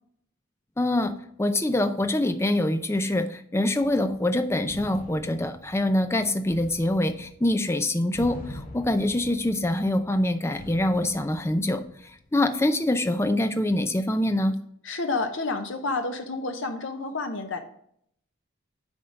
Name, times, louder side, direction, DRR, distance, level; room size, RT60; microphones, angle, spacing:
voice 1, 0.8-1.1 1.4-11.8 12.3-14.6, left 1 dB, 15° left, 8 dB, 0.5 m, -24 dB
sound 1, 3.8-12.5, left 1 dB, 40° left, 1.1 m, -45 dB
voice 2, 14.8-17.6, left 3 dB, 65° left, 6 dB, 0.8 m, -29 dB
9.6 x 3.6 x 5.2 m, 0.68 s
head